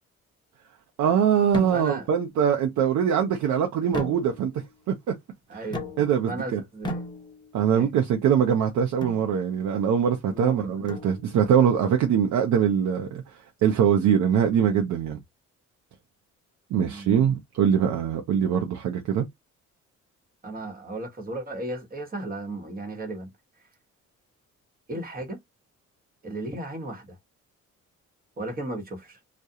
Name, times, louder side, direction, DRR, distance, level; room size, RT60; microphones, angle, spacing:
voice 1, 1.0-4.5 4.9-5.0 5.5-5.7 6.0-6.6 7.5-13.2 13.6-15.2 16.7-19.3, right 8 dB, 75° right, 0.6 m, -22 dB
sound 1, 1.5-2.2 3.9-4.7 5.7-6.3 6.8-7.6 9.0-9.3 10.9-11.5, left 1 dB, 15° left, 0.9 m, -35 dB
voice 2, 1.7-2.1 5.5-5.9 6.3-7.0 7.7-7.9 10.3-10.8 16.8-17.1 20.4-23.3 24.9-25.4 26.2-27.2 28.4-29.2, right 2 dB, 30° right, 1.1 m, -35 dB
2.4 x 2.2 x 2.8 m
cardioid pair, 90°, 30 cm